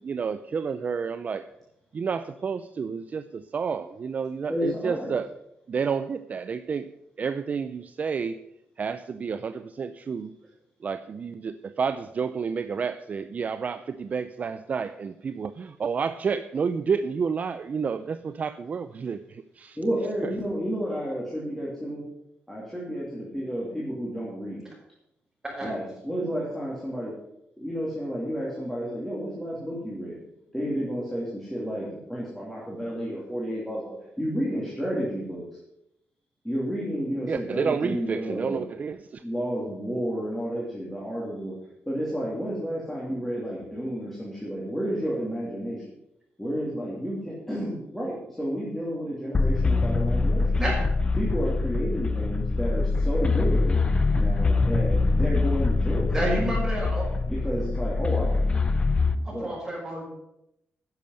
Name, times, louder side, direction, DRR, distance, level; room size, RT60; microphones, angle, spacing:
voice 1, 0.0-1.5 1.9-5.3 5.7-6.9 7.2-8.4 8.8-10.3 10.8-19.8 20.2-20.4 37.3-39.2, right 6 dB, 40° right, 10 dB, 0.5 m, -30 dB
voice 2, 4.5-5.1 19.8-22.0 22.5-24.7 25.6-27.1 27.6-30.2 30.5-35.4 36.4-38.6 39.2-41.6 41.9-45.8 46.4-50.6 51.2-53.8 54.1-56.2 57.3-58.5 59.1-59.5, equal, 5° left, -6 dB, 2.7 m, -31 dB
sound 1, 49.3-59.1, left 3 dB, 25° left, 0.7 m, -24 dB
voice 3, 56.1-57.0 59.2-60.1, right 1 dB, 15° right, -4 dB, 5.8 m, -29 dB
10.5 x 7.0 x 7.7 m, 0.82 s
wide cardioid pair, 155°, 4 cm